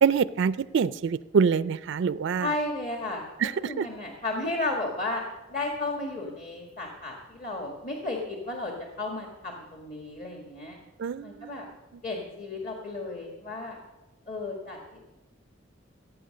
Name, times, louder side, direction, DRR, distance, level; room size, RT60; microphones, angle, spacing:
voice 1, 0.0-2.5 3.4-3.9 11.0-11.7, right 6 dB, 65° right, 17 dB, 0.4 m, -25 dB
voice 2, 2.4-3.3 3.6-5.2 5.5-8.7 9.0-10.8 11.2-11.7 12.0-13.8 14.3-15.0, left 2 dB, 40° left, 0 dB, 1.8 m, -33 dB
17.5 x 8.4 x 6.6 m, 1.1 s
head